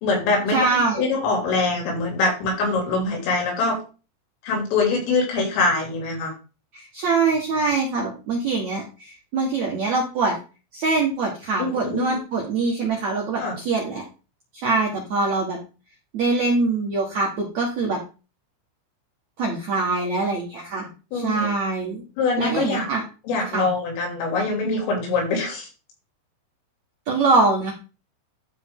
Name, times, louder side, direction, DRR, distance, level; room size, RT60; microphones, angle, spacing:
voice 1, 0.0-3.8 4.4-6.3 8.0-8.1 11.6-12.2 13.4-13.6 21.1-21.5 22.2-22.9 23.3-25.7, left 3 dB, 85° left, 1 dB, 5.5 m, -24 dB
voice 2, 0.5-1.1 6.7-10.4 10.7-14.0 14.5-15.6 16.1-18.0 19.4-20.9 21.1-22.0 22.4-23.0 23.5-23.7 27.1-27.7, right 3 dB, 75° right, -2 dB, 1.6 m, -23 dB
12.0 x 4.9 x 3.7 m, 0.33 s
omnidirectional pair, 5.7 m